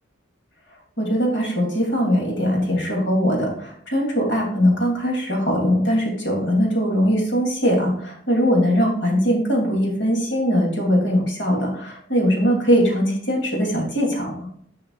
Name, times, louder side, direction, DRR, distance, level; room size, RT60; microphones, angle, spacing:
voice 1, 1.0-14.3, equal, 75° left, -1 dB, 2.6 m, -21 dB
10.5 x 5.6 x 2.4 m, 0.63 s
head